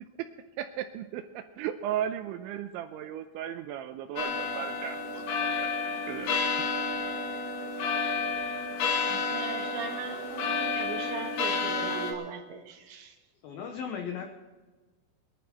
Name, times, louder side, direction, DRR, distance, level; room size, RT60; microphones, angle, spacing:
voice 1, 0.6-6.4, right 10 dB, 85° right, 8 dB, 2.7 m, -36 dB
sound 1, 4.2-12.1, left 4 dB, 60° left, 3.6 m, -30 dB
voice 2, 9.1-13.1, right 6 dB, 65° right, 4 dB, 3.4 m, -40 dB
voice 3, 13.4-14.3, left 7 dB, 85° left, 3 dB, 2.1 m, -36 dB
22.5 x 11.5 x 4.4 m, 1.3 s
omnidirectional pair, 5.9 m